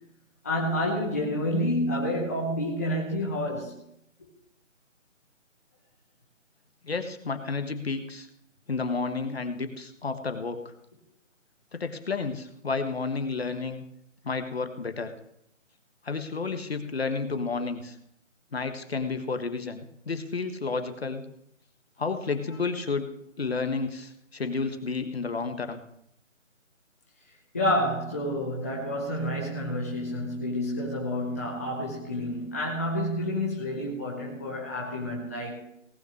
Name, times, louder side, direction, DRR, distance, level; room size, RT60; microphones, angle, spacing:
voice 1, 0.4-3.8 27.5-35.7, left 1 dB, 10° left, -4 dB, 0.9 m, -29 dB
voice 2, 6.8-8.3 8.7-10.7 11.7-13.8 14.2-15.1 16.0-18.0 18.5-21.2 22.0-23.1 23.4-25.8, left 4 dB, 50° left, 8 dB, 1.5 m, -31 dB
18.0 x 6.5 x 6.6 m, 0.74 s
figure-of-eight pair, 160°, 39 cm